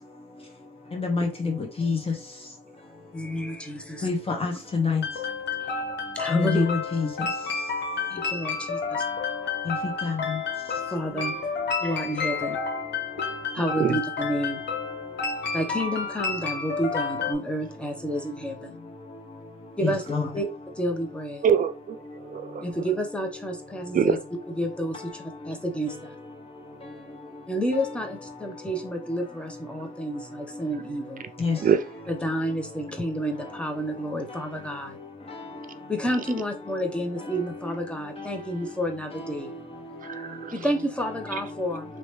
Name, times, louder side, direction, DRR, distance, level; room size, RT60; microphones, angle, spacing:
voice 1, 0.9-2.0 4.0-5.0 6.3-7.1 9.7-9.8 10.0-10.4 19.8-20.3 31.4-31.6, left 5 dB, 30° left, 1.2 m, -26 dB
voice 2, 3.1-4.1 6.1-6.7 8.1-9.0 10.9-11.4 11.8-12.6 13.5-14.6 15.5-18.8 19.8-20.0 20.3-20.5 20.8-21.4 22.6-24.2 24.5-26.2 27.5-31.2 32.1-35.0 35.9-39.5 40.5-41.9, equal, 5° left, 0.9 m, -30 dB
sound 1, 5.0-17.3, left 5 dB, 60° left, 1.1 m, -30 dB
voice 3, 21.4-22.0 22.3-22.6 23.9-24.2 31.6-31.8 40.0-40.5, right 7 dB, 45° right, 0.5 m, -24 dB
3.0 x 2.9 x 3.2 m
cardioid pair, 90°, 20 cm